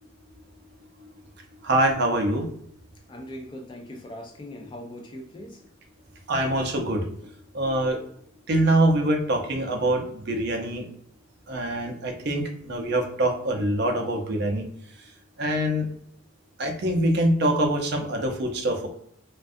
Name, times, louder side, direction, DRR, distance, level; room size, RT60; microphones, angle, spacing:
voice 1, 1.6-2.5 6.3-7.1 7.5-8.0 8.5-10.9 11.5-14.6 15.4-15.9 16.6-18.9, right 1 dB, 55° right, 3 dB, 0.5 m, -24 dB
voice 2, 3.1-5.6, left 1 dB, 25° left, 3 dB, 0.3 m, -40 dB
2.4 x 2.2 x 2.6 m, 0.68 s
head